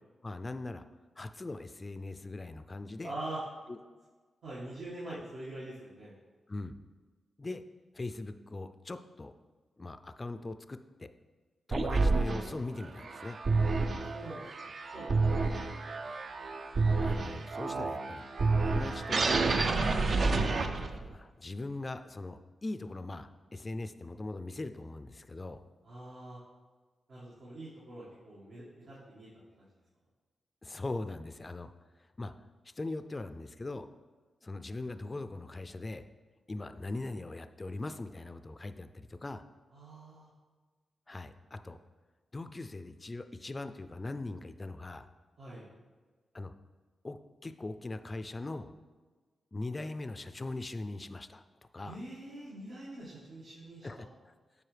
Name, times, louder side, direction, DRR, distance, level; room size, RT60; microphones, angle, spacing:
voice 1, 0.2-0.8 1.2-3.1 3.7-3.8 5.1-5.2 6.5-6.8 7.4-7.6 7.9-9.3 9.8-11.1 11.7-13.4 17.0-18.3 18.6-19.7 20.5-25.6 30.6-31.7 32.2-32.3 32.8-33.9 34.4-36.0 36.5-39.4 41.1-41.8 42.3-45.1 46.3-46.5 47.0-48.7 49.5-51.4 51.7-52.0 53.8-54.3, left 2 dB, 30° left, 10 dB, 0.3 m, -40 dB
voice 2, 3.0-3.4 4.4-6.1 13.9-15.3 25.8-26.4 27.1-29.3 29.6-29.7 39.7-40.3 45.4-45.7 51.8-54.1, right 1 dB, 80° right, -9 dB, 1.6 m, -44 dB
sound 1, 11.7-21.1, right 3 dB, 60° right, 0.4 m, -29 dB
7.5 x 4.8 x 3.3 m, 1.4 s
cardioid pair, 70°, 0 cm